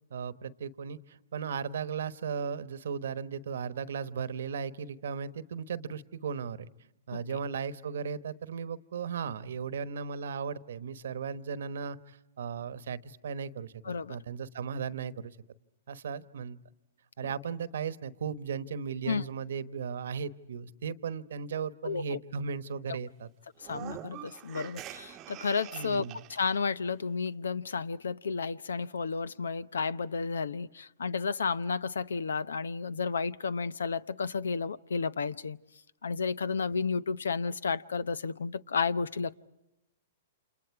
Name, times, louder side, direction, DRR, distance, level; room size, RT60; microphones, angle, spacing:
voice 1, 0.1-6.7 7.1-13.8 14.1-15.4 15.9-16.6 17.2-23.3 25.7-26.2, right 6 dB, 75° right, 15 dB, 1.1 m, -36 dB
voice 2, 13.8-14.2 19.1-19.2 21.8-22.2 22.9-23.0 23.6-26.0 26.3-35.6 36.0-39.3, left 5 dB, 90° left, 19 dB, 0.8 m, -32 dB
sound 1, 23.6-26.6, right 13 dB, 30° right, 0.9 m, -45 dB
30.0 x 27.5 x 4.8 m, 0.90 s
hypercardioid pair, 135°, 0 cm